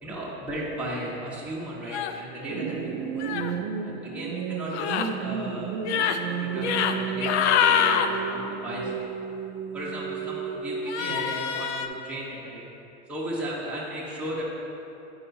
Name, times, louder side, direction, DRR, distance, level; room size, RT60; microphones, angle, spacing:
voice 1, 0.0-5.8 6.1-9.1 9.7-12.6 13.1-14.4, right 1 dB, 5° right, -7 dB, 1.1 m, -36 dB
sound 1, 1.9-2.2 3.2-3.5 4.7-5.1 5.8-6.2 6.6-6.9 7.2-8.1 10.9-11.9, left 8 dB, 75° left, 0.5 m, -25 dB
sound 2, 2.5-11.5, right 7 dB, 45° right, 0.4 m, -33 dB
9.7 x 4.7 x 2.7 m, 2.9 s
supercardioid pair, 125°, 34 cm